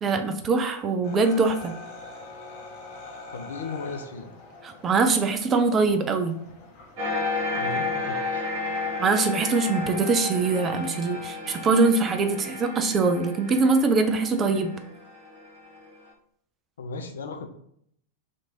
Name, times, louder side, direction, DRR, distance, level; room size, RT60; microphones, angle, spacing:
voice 1, 0.0-1.7 4.6-6.4 9.0-14.7, right 4 dB, 25° right, 7 dB, 0.4 m, -23 dB
sound 1, 1.0-10.2, left 3 dB, 40° left, 0.8 m, -45 dB
voice 2, 3.3-4.3 7.5-8.5 16.8-17.5, left 4 dB, 65° left, 5 dB, 0.4 m, -36 dB
sound 2, 7.0-16.0, left 3 dB, 45° right, 1.1 m, -32 dB
2.9 x 2.6 x 4.3 m, 0.69 s
figure-of-eight pair, 90°, 0 cm